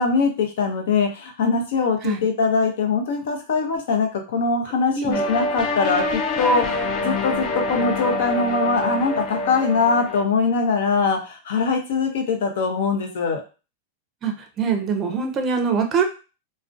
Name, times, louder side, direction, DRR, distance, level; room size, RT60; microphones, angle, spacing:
voice 1, 0.0-13.4, left 4 dB, 75° left, 3 dB, 0.7 m, -22 dB
voice 2, 4.9-5.3 14.2-16.0, right 6 dB, 30° right, 5 dB, 0.5 m, -23 dB
sound 1, 5.1-10.2, left 2 dB, 35° left, 0.3 m, -26 dB
2.3 x 2.1 x 2.5 m, 0.32 s
supercardioid pair, 135°, 0 cm